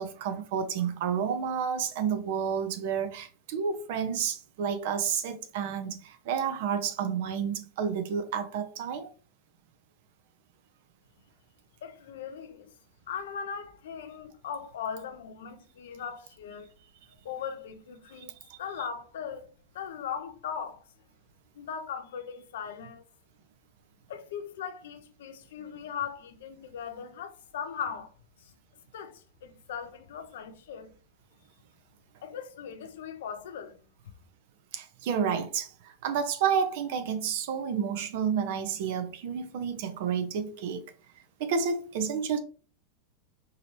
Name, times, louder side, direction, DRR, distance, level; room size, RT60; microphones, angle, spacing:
voice 1, 0.0-9.1 18.2-18.6 34.7-40.8 41.4-42.4, right 7 dB, 55° right, 0.7 m, -30 dB
voice 2, 11.8-12.7 13.1-16.7 17.2-19.5 19.7-20.8 21.5-23.0 24.1-28.1 28.4-28.5 28.9-30.9 32.2-33.8, left 7 dB, 60° left, 0.6 m, -39 dB
4.7 x 2.9 x 3.2 m
figure-of-eight pair, 85°, 0 cm